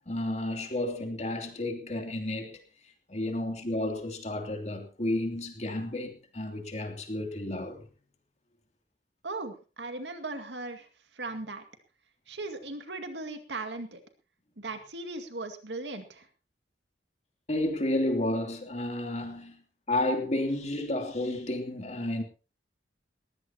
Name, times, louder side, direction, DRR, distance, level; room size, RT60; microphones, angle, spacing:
voice 1, 0.1-2.6 3.1-7.8 17.5-19.6 19.9-22.2, left 1 dB, 40° left, 2.9 m, -31 dB
voice 2, 9.2-10.9 11.1-11.6 12.3-14.0 14.6-16.3, right 2 dB, 75° right, 2.2 m, -38 dB
20.5 x 16.0 x 2.9 m
head